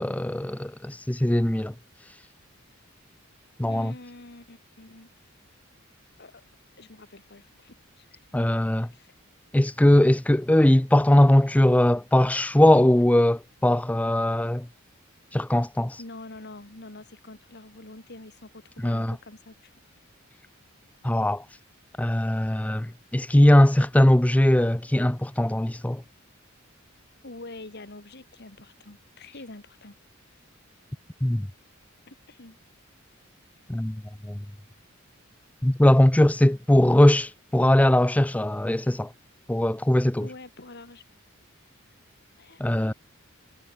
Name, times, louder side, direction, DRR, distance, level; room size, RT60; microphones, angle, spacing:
voice 1, 0.0-1.7 3.6-3.9 8.3-8.9 9.5-14.7 15.3-16.0 18.8-19.1 21.0-21.4 22.0-26.0 31.2-31.5 33.7-34.4 35.6-39.1 39.5-40.3 42.6-42.9, left 1 dB, 5° left, 0.5 m, -20 dB
voice 2, 3.7-5.1 6.2-6.4 6.8-8.2 8.9-9.1 16.0-19.7 27.2-29.9 32.1-32.6 40.2-41.0 42.4-42.9, left 2 dB, 50° left, 2.3 m, -45 dB
head